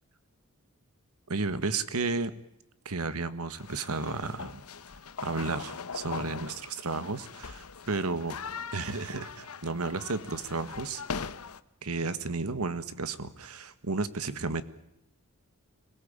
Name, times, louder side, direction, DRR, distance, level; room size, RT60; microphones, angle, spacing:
voice 1, 1.3-2.3 2.8-4.6 5.2-8.4 8.7-11.0 11.8-14.6, right 3 dB, 85° right, 13 dB, 1.6 m, -33 dB
sound 1, 3.6-11.6, left 5 dB, 80° left, 1.0 m, -41 dB
26.0 x 18.0 x 8.8 m, 0.83 s
head